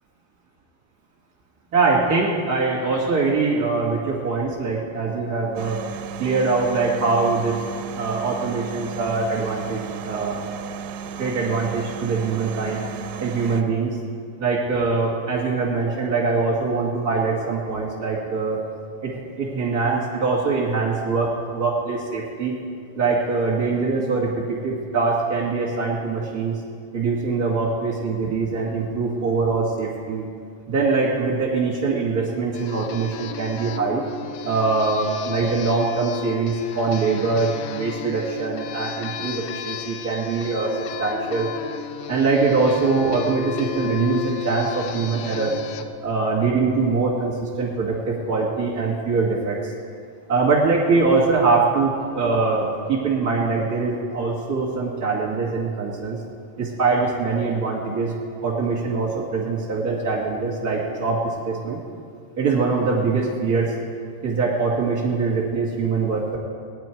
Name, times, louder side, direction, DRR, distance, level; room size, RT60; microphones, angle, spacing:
voice 1, 1.7-5.8 6.2-7.6 7.9-10.4 11.2-12.8 13.2-14.0 14.4-18.6 19.0-22.6 22.9-26.6 26.9-30.2 30.7-34.0 34.4-40.7 41.0-41.5 42.1-45.5 46.0-49.6 50.3-56.2 56.6-58.1 58.4-61.8 62.4-63.7 64.2-66.4, right 4 dB, 35° right, -4 dB, 1.8 m, -23 dB
sound 1, 5.6-13.6, right 6 dB, 85° right, 3.0 m, -34 dB
sound 2, 32.5-45.8, left 9 dB, 85° left, 2.8 m, -34 dB
18.5 x 10.5 x 4.6 m, 2.1 s
omnidirectional pair, 4.8 m